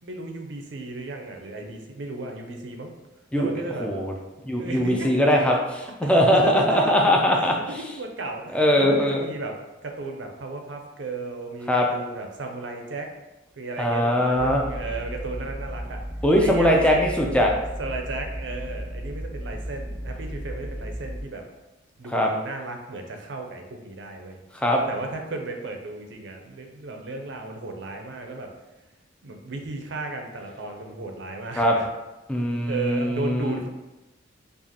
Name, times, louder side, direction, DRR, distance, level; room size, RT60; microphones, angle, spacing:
voice 1, 0.0-2.9 3.4-4.1 4.6-5.6 6.0-9.6 9.8-13.1 13.5-16.0 16.4-17.2 17.8-21.4 22.0-24.4 24.9-28.5 29.2-31.9 32.7-33.7, right 2 dB, 65° right, 3 dB, 0.5 m, -34 dB
voice 2, 3.8-4.1 4.4-5.6 6.0-7.5 8.5-9.2 11.7-11.9 13.8-14.6 16.2-17.5 22.1-22.3 24.5-24.9 31.6-31.8 32.3-33.6, equal, 5° left, 0 dB, 0.4 m, -21 dB
sound 1, 14.4-21.2, equal, 70° left, 1.3 m, -35 dB
4.8 x 2.5 x 2.8 m, 1.0 s
head